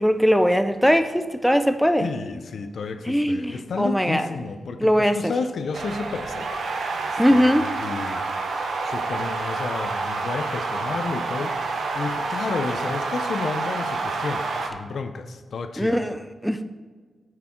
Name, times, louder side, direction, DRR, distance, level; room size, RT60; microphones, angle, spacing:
voice 1, 0.0-2.1 3.1-4.3 4.8-5.2 7.2-7.7 15.8-16.6, equal, ahead, 9 dB, 0.4 m, -20 dB
voice 2, 2.0-8.2 8.6-16.0, left 4 dB, 70° left, 9 dB, 0.6 m, -32 dB
sound 1, 5.7-14.7, right 3 dB, 80° right, 0.9 m, -28 dB
8.4 x 6.7 x 4.4 m, 1.4 s
wide cardioid pair, 115°, 0 cm